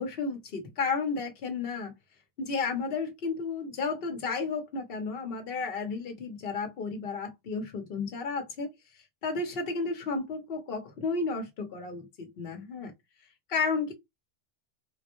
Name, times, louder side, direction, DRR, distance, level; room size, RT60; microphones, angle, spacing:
voice 1, 0.0-1.9 2.4-8.7 9.2-12.9 13.5-13.9, left 4 dB, 55° left, 1.1 m, -32 dB
3.7 x 2.1 x 3.0 m
omnidirectional pair, 1.2 m